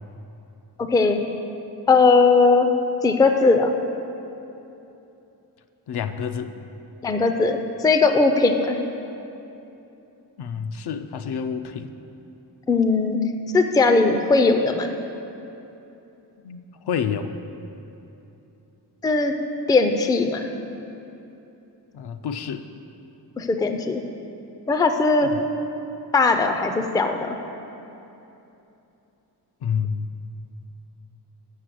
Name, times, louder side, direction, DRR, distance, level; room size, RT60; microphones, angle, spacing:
voice 1, 0.8-1.2 1.9-2.7 3.0-3.7 7.0-8.8 12.7-13.2 13.5-14.9 19.0-19.3 19.7-20.5 23.4-24.0 24.7-25.3 26.1-27.4, left 3 dB, 10° left, 6 dB, 0.3 m, -19 dB
voice 2, 5.9-6.5 10.4-11.9 16.4-17.4 21.9-22.7 25.2-25.4 29.6-30.1, left 7 dB, 70° left, 9 dB, 0.5 m, -29 dB
6.5 x 6.3 x 7.5 m, 2.9 s
wide cardioid pair, 135°, 42 cm